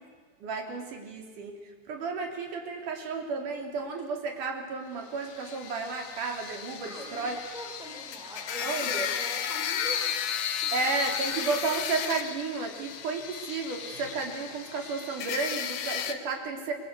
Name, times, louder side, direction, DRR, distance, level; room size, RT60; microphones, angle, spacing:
voice 1, 0.4-7.4 8.6-9.1 10.7-16.7, right 4 dB, 85° right, 3 dB, 4.6 m, -33 dB
sound 1, 5.2-16.1, left 8 dB, 70° left, 2.7 m, -34 dB
voice 2, 6.8-10.7, equal, ahead, -2 dB, 4.3 m, -43 dB
25.5 x 23.0 x 8.3 m, 1.5 s
omnidirectional pair, 3.5 m